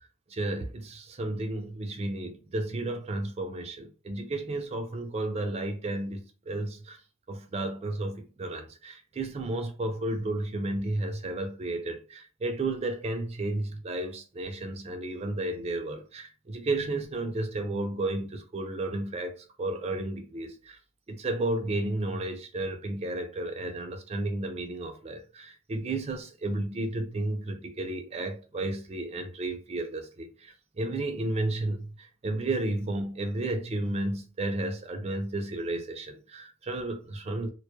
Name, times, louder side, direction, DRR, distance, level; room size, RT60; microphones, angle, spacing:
voice 1, 0.3-7.0 7.3-19.3 19.6-20.8 21.1-31.9 32.2-37.5, right 2 dB, 30° right, 0.4 m, -32 dB
2.2 x 2.1 x 2.8 m
head